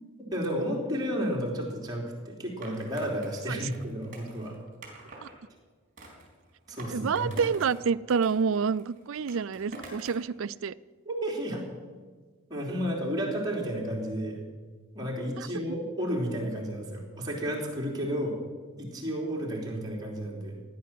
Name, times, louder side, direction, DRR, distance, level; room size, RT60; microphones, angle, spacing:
voice 1, 0.2-4.6 6.7-7.3 11.1-11.6 12.5-14.4 14.9-18.4 18.8-20.6, equal, 15° right, -3 dB, 3.5 m, -32 dB
Skateboard, 2.6-5.3 6.0-7.8 8.1-10.3, right 2 dB, 35° right, 3.9 m, -46 dB
voice 2, 6.9-10.7 15.4-15.5, right 6 dB, 60° right, 18 dB, 0.4 m, -28 dB
16.5 x 10.5 x 7.6 m, 1.4 s
head